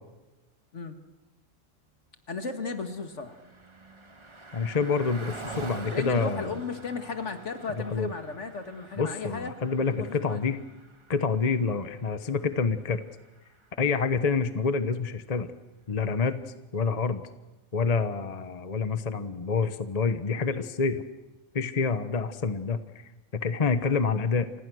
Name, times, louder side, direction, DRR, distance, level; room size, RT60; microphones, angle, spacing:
voice 1, 2.3-3.4 5.9-9.5 9.9-10.4, left 4 dB, 60° left, 7 dB, 2.3 m, -35 dB
Car passing by, 2.4-14.2, right 3 dB, 25° right, 1.3 m, -47 dB
voice 2, 4.5-6.5 7.8-8.1 9.0-10.6 11.1-13.0 13.8-15.5 15.9-16.4 16.7-17.2 17.7-21.0 21.5-24.5, left 5 dB, 30° left, 10 dB, 1.1 m, -27 dB
30.0 x 25.5 x 6.3 m, 1.1 s
omnidirectional pair, 1.4 m